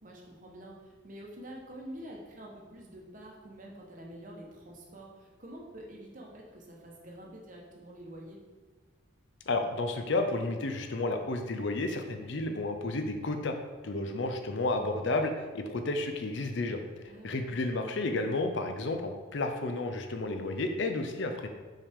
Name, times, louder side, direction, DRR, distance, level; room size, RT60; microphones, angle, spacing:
voice 1, 0.0-8.4 17.1-17.7, right 1 dB, 40° right, -1 dB, 1.0 m, -47 dB
voice 2, 9.5-13.6 13.8-16.8 17.2-21.5, left 2 dB, 60° left, 6 dB, 0.5 m, -31 dB
5.5 x 4.9 x 3.5 m, 1.3 s
head